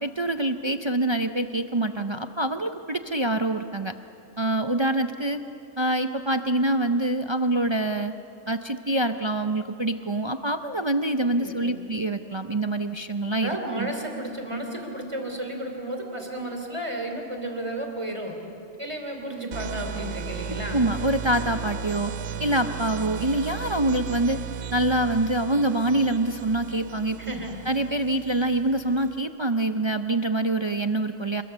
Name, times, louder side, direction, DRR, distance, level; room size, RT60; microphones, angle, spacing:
voice 1, 0.0-3.9 4.4-5.4 5.8-8.1 8.5-13.5 13.8-13.9 20.7-22.1 22.4-24.4 24.7-27.2 27.7-31.4, right 1 dB, 45° right, 8 dB, 0.3 m, -25 dB
voice 2, 11.3-11.7 13.3-18.4 18.8-20.9 27.2-27.5, right 1 dB, 20° right, 3 dB, 3.3 m, -33 dB
sound 1, 19.5-29.2, right 7 dB, 65° right, 1.1 m, -35 dB
28.0 x 22.0 x 7.0 m, 2.7 s
omnidirectional pair, 1.4 m